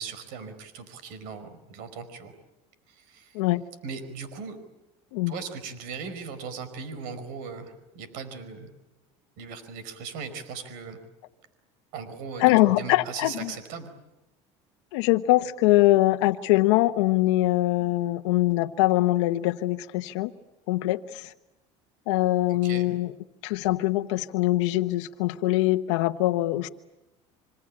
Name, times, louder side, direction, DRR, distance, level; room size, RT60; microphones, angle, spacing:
voice 1, 0.0-2.3 2.9-3.4 3.8-4.6 5.3-8.7 9.4-11.0 11.9-13.9 22.5-22.8, right 5 dB, 75° right, 12 dB, 4.9 m, -38 dB
voice 2, 12.4-13.5 14.9-20.3 20.7-21.3 22.1-23.1 23.4-26.7, left 17 dB, 85° left, 7 dB, 1.0 m, -23 dB
27.0 x 25.0 x 8.6 m, 0.95 s
supercardioid pair, 105°, 15 cm